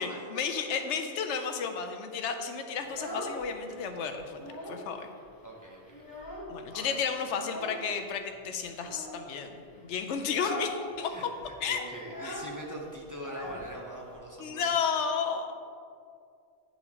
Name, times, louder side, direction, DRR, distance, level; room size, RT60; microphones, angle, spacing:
voice 1, 0.0-5.1 6.5-9.5 9.8-11.1 11.6-11.8 12.2-12.4 14.4-15.5, left 6 dB, 80° left, 5 dB, 0.9 m, -32 dB
Child speech kid speaking, 2.7-3.8 4.1-4.9 5.2-5.3 5.6-6.7 7.4-7.9 8.7-9.2 9.6-9.8 10.2-10.8 11.0-11.1 11.4-14.2, left 1 dB, 20° left, 0.9 m, -41 dB
voice 2, 5.4-6.0 6.7-6.9 11.0-14.6, right 1 dB, 20° right, -2 dB, 0.6 m, -42 dB
9.7 x 4.0 x 2.9 m, 2.3 s
omnidirectional pair, 1.2 m